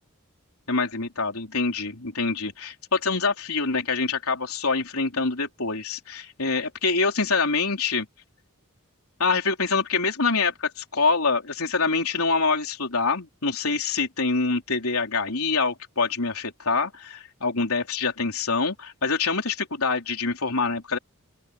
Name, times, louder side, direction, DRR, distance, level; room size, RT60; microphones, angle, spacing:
voice 1, 0.7-8.1 9.2-21.0, left 4 dB, 75° left, 4.1 m, -25 dB
open air
head